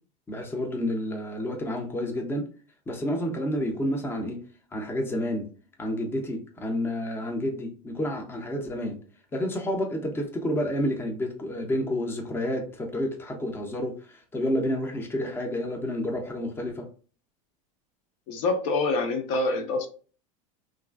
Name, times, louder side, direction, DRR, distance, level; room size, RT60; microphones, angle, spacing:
voice 1, 0.3-2.5 2.9-4.4 4.7-5.5 5.8-9.0 9.3-16.9, left 1 dB, 10° left, 3 dB, 0.5 m, -30 dB
voice 2, 18.3-19.9, left 3 dB, 60° left, 6 dB, 0.6 m, -26 dB
2.9 x 2.5 x 2.3 m, 0.38 s
supercardioid pair, 115°, 18 cm